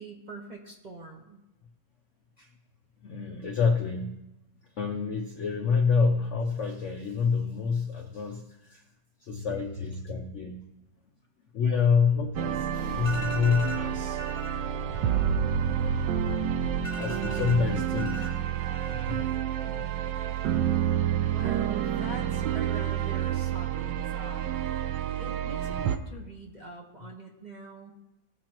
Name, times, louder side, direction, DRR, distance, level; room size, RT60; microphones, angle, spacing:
voice 1, 0.0-1.4 9.3-9.5 10.1-10.2 19.6-20.1 20.5-20.9 21.3-24.4 25.2-27.9, right 2 dB, 30° right, -2 dB, 1.1 m, -43 dB
voice 2, 3.0-4.1 4.8-8.8 9.2-10.6 11.5-14.5 15.0-15.3 16.8-18.4 18.7-19.2 24.8-24.9, left 5 dB, 60° left, 3 dB, 0.8 m, -28 dB
sound 1, 12.4-26.0, right 9 dB, 80° right, 1.3 m, -29 dB
sound 2, 12.7-13.4 13.9-14.0 17.7-18.3, left 2 dB, 20° left, 2.2 m, -51 dB
18.0 x 7.2 x 3.0 m, 0.95 s
omnidirectional pair, 2.0 m